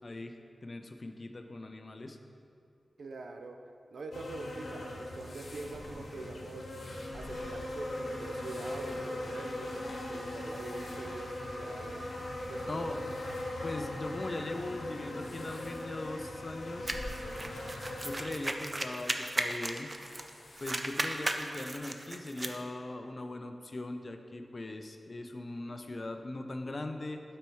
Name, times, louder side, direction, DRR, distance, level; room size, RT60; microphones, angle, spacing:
voice 1, 0.0-2.2 12.7-13.0 13.6-17.1 18.0-20.0 20.6-27.2, left 2 dB, 35° left, 6 dB, 0.4 m, -40 dB
voice 2, 3.0-3.6 3.9-6.7 7.1-9.8 10.1-12.0 12.5-12.9, right 3 dB, 85° right, 5 dB, 0.5 m, -44 dB
sound 1, 4.1-18.2, left 1 dB, 80° left, 1.0 m, -40 dB
sound 2, 5.0-21.8, left 1 dB, 55° left, 1.0 m, -54 dB
sound 3, 16.9-20.3 20.6-22.6, right 2 dB, 25° right, 0.4 m, -36 dB
8.7 x 4.4 x 4.6 m, 2.5 s
wide cardioid pair, 130°, 0 cm